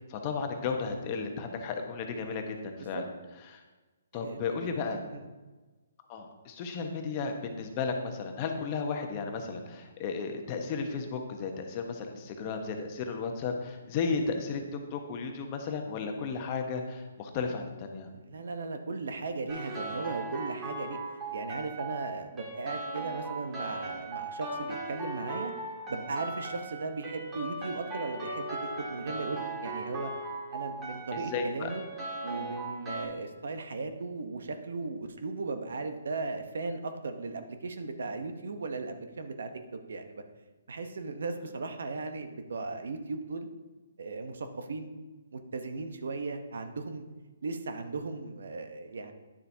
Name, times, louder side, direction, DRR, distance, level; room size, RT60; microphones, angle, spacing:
voice 1, 0.0-3.1 3.5-3.6 4.1-5.0 6.1-14.6 14.9-18.1 31.1-31.7, left 5 dB, 30° left, 4 dB, 1.0 m, -34 dB
voice 2, 4.1-4.5 5.1-5.3 18.1-21.0 21.3-25.5 25.9-30.1 30.5-31.8 32.2-40.2 40.7-43.5 44.0-44.9 45.3-47.0 47.4-49.1, right 3 dB, 75° right, 7 dB, 0.8 m, -37 dB
sound 1, 19.5-33.1, right 2 dB, 15° right, 1.9 m, -38 dB
10.0 x 7.0 x 2.7 m, 1.2 s
hypercardioid pair, 150°, 0 cm